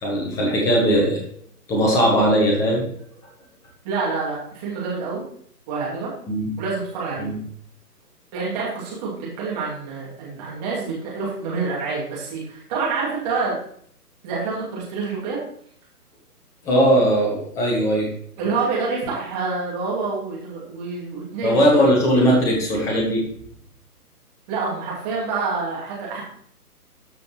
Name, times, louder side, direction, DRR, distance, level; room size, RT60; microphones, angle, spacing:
voice 1, 0.0-1.2 1.7-2.8 6.3-6.5 7.2-7.4 16.6-18.1 21.4-23.3, equal, 5° left, -1 dB, 0.9 m, -19 dB
voice 2, 3.8-5.2 5.7-6.1 6.6-7.3 8.3-13.6 14.2-15.4 18.4-21.8 24.5-26.2, right 4 dB, 25° right, -5 dB, 2.6 m, -27 dB
13.0 x 5.1 x 3.1 m, 0.63 s
figure-of-eight pair, 135°, 47 cm